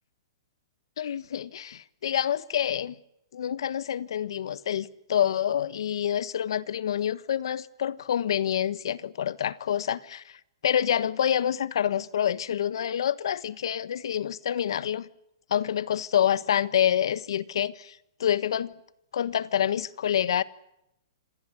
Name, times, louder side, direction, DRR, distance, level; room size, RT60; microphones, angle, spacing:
voice 1, 1.0-3.0 3.3-10.4 10.6-15.1 15.5-18.7 19.1-20.4, left 9 dB, 70° left, 1.4 m, -27 dB
26.5 x 17.0 x 9.9 m
hypercardioid pair, 160°, 3 cm